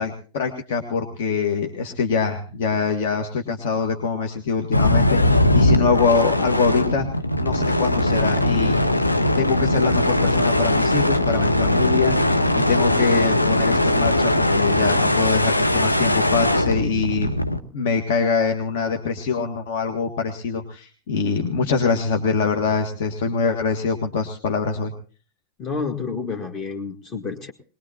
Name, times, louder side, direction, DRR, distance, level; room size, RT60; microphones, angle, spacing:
voice 1, 0.0-7.1 7.4-8.8 9.4-17.4 17.7-24.9, left 5 dB, 55° left, 5 dB, 1.7 m, -24 dB
sound 1, 4.7-17.6, left 1 dB, 85° left, 1.1 m, -20 dB
voice 2, 25.6-27.5, left 5 dB, 30° left, 2 dB, 1.9 m, -29 dB
21.5 x 20.5 x 2.9 m, 0.38 s
figure-of-eight pair, 90°, 0 cm